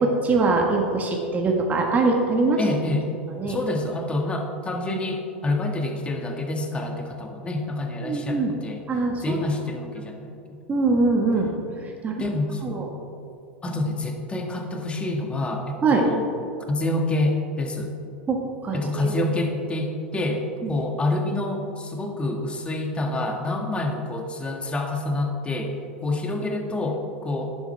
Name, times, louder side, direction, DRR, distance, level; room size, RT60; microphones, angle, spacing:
voice 1, 0.0-2.6 3.3-3.6 8.0-8.5 8.9-9.4 10.7-11.5 11.8-12.2 12.6-12.9 15.8-16.0 18.3-19.2 20.6-20.7, right 3 dB, 25° right, 1 dB, 1.4 m, -23 dB
voice 2, 2.6-3.1 3.5-8.8 9.2-10.6 12.2-12.8 13.6-16.3 16.7-17.9 18.7-25.7 26.0-27.6, left 2 dB, 15° left, 3 dB, 1.6 m, -27 dB
11.5 x 10.5 x 3.4 m, 2.6 s
hypercardioid pair, 95°, 6 cm